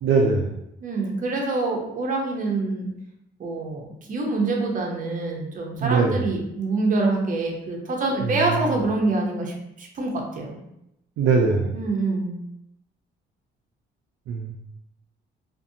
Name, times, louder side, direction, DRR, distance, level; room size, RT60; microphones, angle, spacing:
voice 1, 0.0-0.6 5.8-6.2 8.2-8.4 11.2-11.7 14.3-14.5, right 4 dB, 75° right, 0 dB, 0.5 m, -21 dB
voice 2, 0.8-2.9 3.4-10.6 11.7-12.4, right 3 dB, 40° right, 0 dB, 0.7 m, -26 dB
2.6 x 2.5 x 2.7 m, 0.81 s
cardioid pair, 90°, 20 cm